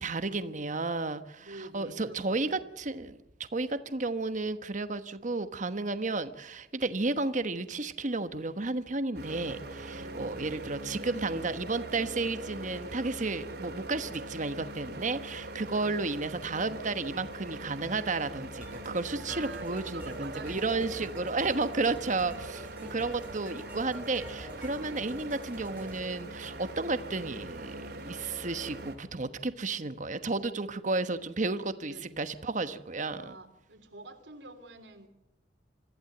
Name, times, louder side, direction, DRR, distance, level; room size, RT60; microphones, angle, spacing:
voice 1, 0.0-3.2 3.5-33.3, right 3 dB, 45° right, 11 dB, 1.2 m, -32 dB
voice 2, 1.4-2.4 9.9-10.5 19.3-21.0 22.8-23.0 31.9-32.2 33.2-35.1, right 2 dB, 80° right, 6 dB, 3.4 m, -48 dB
sound 1, 9.1-28.9, right 1 dB, 60° right, 3.2 m, -42 dB
sound 2, 18.6-26.0, equal, 10° right, 3.4 m, -48 dB
25.5 x 15.0 x 8.0 m, 0.88 s
head